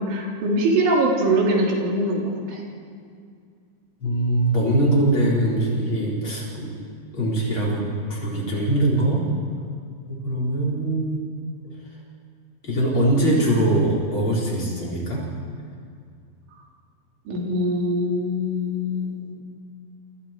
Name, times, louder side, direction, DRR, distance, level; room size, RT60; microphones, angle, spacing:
voice 1, 0.0-2.6 17.3-19.3, right 1 dB, 85° right, -2 dB, 5.8 m, -23 dB
voice 2, 4.0-6.7 7.1-7.8 8.1-9.2 10.1-11.3 12.6-15.2, right 1 dB, 25° left, -5 dB, 5.4 m, -22 dB
28.0 x 28.0 x 4.7 m, 2.2 s
omnidirectional pair, 5.2 m